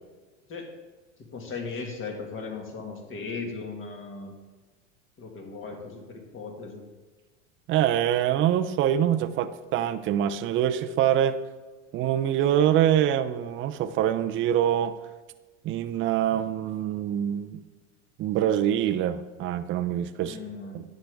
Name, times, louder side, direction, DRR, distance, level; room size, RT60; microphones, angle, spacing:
voice 1, 1.3-4.4 5.2-6.9 20.2-20.8, left 4 dB, 30° left, 2 dB, 2.0 m, -37 dB
voice 2, 7.7-11.4 11.9-14.9 15.6-17.6 18.2-20.4 20.7-20.8, right 10 dB, 30° right, 10 dB, 0.5 m, -25 dB
10.0 x 8.0 x 3.5 m, 1.3 s
supercardioid pair, 120°, 39 cm